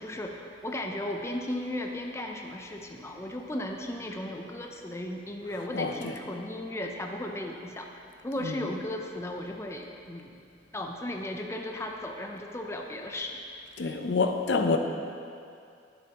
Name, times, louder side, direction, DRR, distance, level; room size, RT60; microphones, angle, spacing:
voice 1, 0.0-7.9 8.2-10.3 10.7-13.4, left 1 dB, 15° left, 2 dB, 0.5 m, -35 dB
voice 2, 5.7-6.1 8.4-8.6 13.8-14.8, left 4 dB, 80° left, 6 dB, 0.6 m, -27 dB
13.0 x 7.6 x 2.9 m, 2.5 s
head